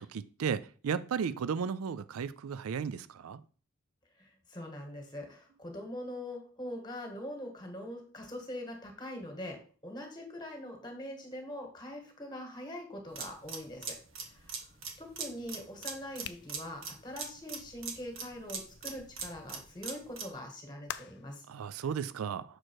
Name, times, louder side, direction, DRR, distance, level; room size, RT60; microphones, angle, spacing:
voice 1, 0.0-3.4 21.5-22.4, right 6 dB, 85° right, 0.4 m, -34 dB
voice 2, 4.2-14.7 15.0-21.4, left 1 dB, 20° left, 1.6 m, -43 dB
sound 1, 13.1-20.4, right 5 dB, 65° right, 1.2 m, -42 dB
sound 2, 16.2-19.5 20.9-21.3, left 10 dB, 55° left, 0.4 m, -47 dB
6.3 x 4.5 x 4.6 m
head